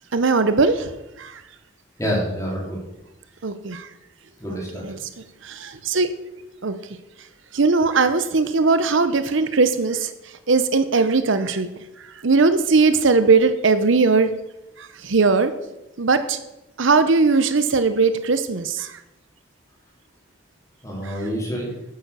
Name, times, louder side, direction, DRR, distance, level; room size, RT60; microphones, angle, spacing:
voice 1, 0.1-0.9 1.2-1.4 3.4-3.9 4.5-5.0 5.4-6.1 6.6-6.7 7.5-10.1 10.5-11.7 12.2-14.3 14.8-15.5 16.0-16.4 16.8-19.0 21.0-21.2, right 4 dB, 70° right, 11 dB, 0.8 m, -19 dB
voice 2, 2.0-2.8 4.4-4.8 20.8-21.7, equal, 15° left, -3 dB, 3.7 m, -27 dB
8.9 x 8.9 x 6.7 m, 0.93 s
head